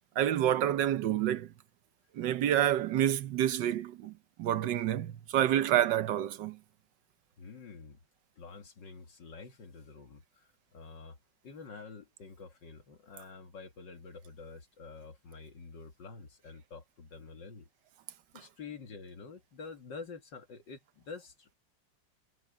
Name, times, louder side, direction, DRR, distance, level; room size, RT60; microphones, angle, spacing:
voice 1, 0.2-1.5 2.1-4.1 4.4-6.6, right 11 dB, 70° right, 1.5 m, -28 dB
voice 2, 7.4-8.0 8.4-11.2 11.4-17.7 18.3-21.5, left 4 dB, 70° left, 2.3 m, -48 dB
omnidirectional pair, 2.0 m